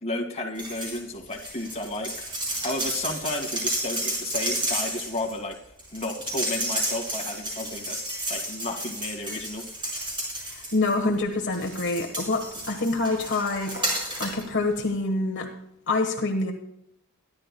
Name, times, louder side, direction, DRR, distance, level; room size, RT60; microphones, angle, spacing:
voice 1, 0.0-2.1 2.6-5.6 5.9-8.0 8.3-9.6, left 2 dB, 30° left, 0 dB, 2.1 m, -32 dB
sound 1, 0.5-1.0 1.3-11.1 11.5-14.4 14.8-14.9, right 1 dB, 20° right, 5.2 m, -32 dB
voice 2, 10.4-15.5 15.9-16.5, left 2 dB, 55° left, 2 dB, 1.4 m, -26 dB
24.5 x 11.5 x 2.3 m, 0.75 s
head